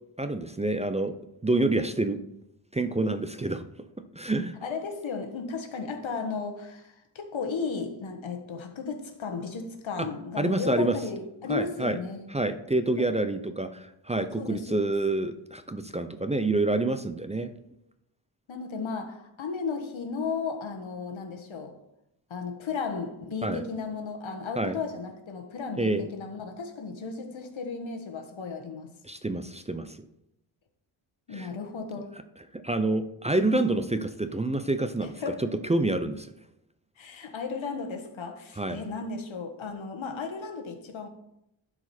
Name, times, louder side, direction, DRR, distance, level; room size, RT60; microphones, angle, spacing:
voice 1, 0.2-1.1 1.4-2.2 2.7-3.7 4.1-4.5 10.0-10.1 10.4-11.0 11.5-12.0 12.3-17.5 23.4-23.6 24.6-24.8 25.8-26.0 29.0-30.0 31.3-31.5 32.5-35.1 35.7-36.3 38.6-38.8, right 2 dB, 15° right, 0.3 m, -27 dB
voice 2, 4.6-12.3 14.4-14.9 18.5-21.7 22.3-28.9 31.3-32.1 35.0-35.4 37.0-41.1, left 5 dB, 75° left, 1.4 m, -35 dB
11.5 x 4.9 x 4.3 m
wide cardioid pair, 150°, 47 cm